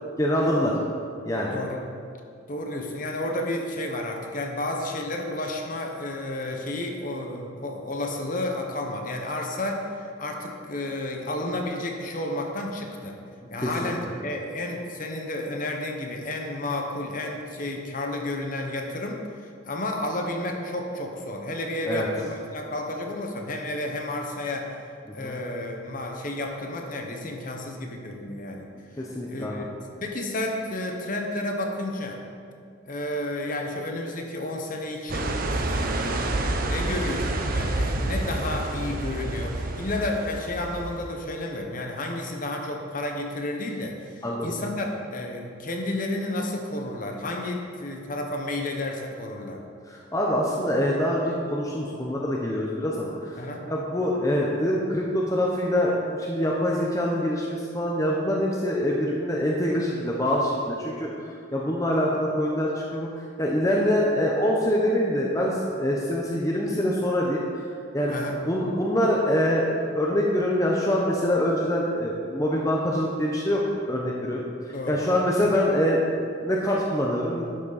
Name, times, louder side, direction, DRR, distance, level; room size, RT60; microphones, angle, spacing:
voice 1, 0.2-0.8 1.2-1.5 13.6-13.9 21.9-22.1 25.2-25.4 29.0-29.7 44.2-44.5 49.9-53.1 53.7-61.1 61.5-63.1 63.4-68.1 68.5-73.6 73.9-74.5 74.9-77.4, equal, 15° left, -3 dB, 0.7 m, -25 dB
voice 2, 2.5-13.1 13.5-24.7 25.1-28.7 29.3-29.7 30.0-32.2 32.9-49.6 53.4-53.6 68.1-68.4 74.7-75.0 75.4-75.5, left 1 dB, 40° left, 2 dB, 1.0 m, -31 dB
sound 1, 35.1-41.1, right 2 dB, 45° right, 0.6 m, -28 dB
11.5 x 6.1 x 4.1 m, 2.3 s
head